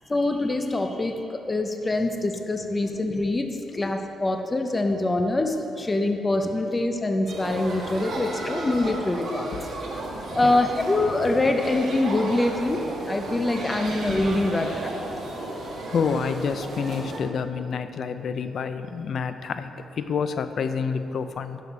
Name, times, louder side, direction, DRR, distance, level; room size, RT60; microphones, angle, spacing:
voice 1, 0.1-1.2 1.5-3.5 3.7-9.5 10.3-12.8 13.1-14.9, left 2 dB, 20° left, 4 dB, 0.7 m, -24 dB
sound 1, 7.3-17.2, right 2 dB, 65° right, 1.8 m, -34 dB
voice 2, 15.9-21.6, left 6 dB, 60° left, 10 dB, 0.5 m, -28 dB
11.0 x 6.5 x 5.5 m, 2.8 s
cardioid pair, 115°, 0 cm